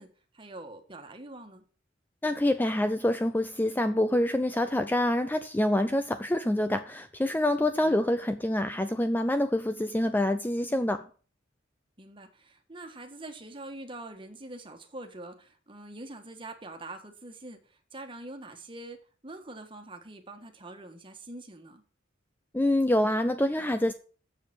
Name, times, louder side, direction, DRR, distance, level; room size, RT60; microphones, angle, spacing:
voice 1, 0.0-1.6 7.3-8.1 10.7-11.1 12.0-21.8, right 2 dB, 25° right, 1.4 m, -45 dB
voice 2, 2.2-11.0 22.5-23.9, left 1 dB, 10° left, 0.4 m, -26 dB
7.3 x 6.6 x 7.4 m
head